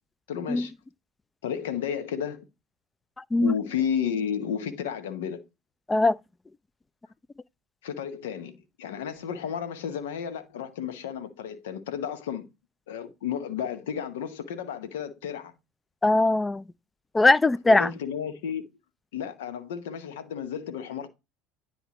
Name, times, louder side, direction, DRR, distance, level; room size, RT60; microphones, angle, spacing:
voice 1, 0.3-0.7 1.4-2.4 3.4-5.4 7.8-12.5 12.9-15.5 17.7-18.7 19.1-21.1, left 8 dB, 85° left, 0.8 m, -32 dB
voice 2, 16.0-16.6 17.1-17.9, left 2 dB, 20° left, 0.3 m, -20 dB
10.0 x 4.4 x 2.9 m
hypercardioid pair, 80°, 0 cm